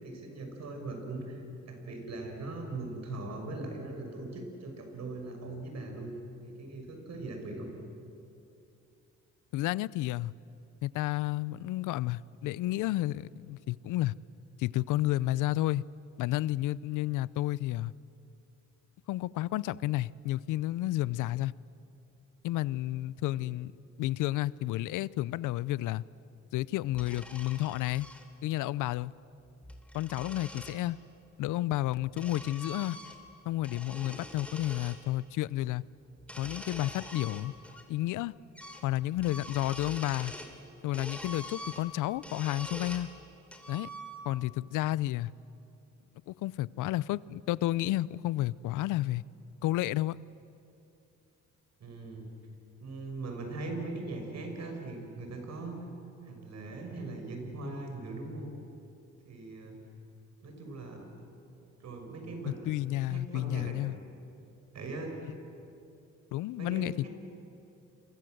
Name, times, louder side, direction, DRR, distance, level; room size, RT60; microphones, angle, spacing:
voice 1, 0.0-6.1 6.4-7.7 23.3-23.4 51.8-52.3 52.8-55.8 56.2-58.5 59.2-59.8 60.4-61.1 61.8-62.6 63.1-63.7 64.7-65.1 66.6-67.1, right 2 dB, 60° right, 6.3 m, -40 dB
voice 2, 9.5-10.3 10.8-14.1 14.6-15.8 16.2-17.9 19.1-21.5 22.4-23.7 24.0-26.0 26.5-28.1 28.4-29.1 29.9-31.0 31.4-33.0 33.5-35.8 36.4-37.5 37.9-38.3 38.8-40.3 40.8-43.1 43.7-43.9 44.3-45.3 46.3-49.2 49.6-50.2 62.7-64.0 65.2-65.3 66.3-67.1, left 16 dB, 90° left, 0.6 m, -31 dB
sound 1, 26.9-28.2 29.5-30.8 31.7-33.3 33.6-35.0 36.2-37.8 38.1-38.2 38.6-38.9 39.2-40.6 40.9-43.1 43.5-44.5, equal, 5° left, 3.3 m, -45 dB
29.5 x 24.0 x 7.9 m
cardioid pair, 90°, 30 cm